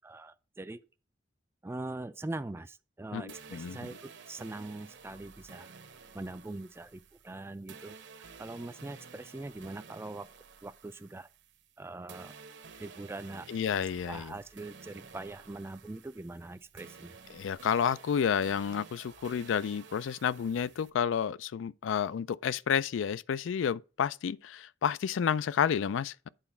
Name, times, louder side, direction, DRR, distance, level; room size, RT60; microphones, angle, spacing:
voice 1, 0.0-0.8 1.6-5.7 6.1-10.3 10.6-11.3 11.8-12.3 12.8-13.5 14.1-17.2, right 2 dB, 15° right, 0.3 m, -42 dB
voice 2, 3.1-3.8 13.5-14.3 17.3-26.3, left 7 dB, 75° left, 0.3 m, -30 dB
sound 1, 3.3-11.8 12.1-20.9, right 5 dB, 65° right, 0.9 m, -52 dB
9.0 x 4.1 x 5.8 m
head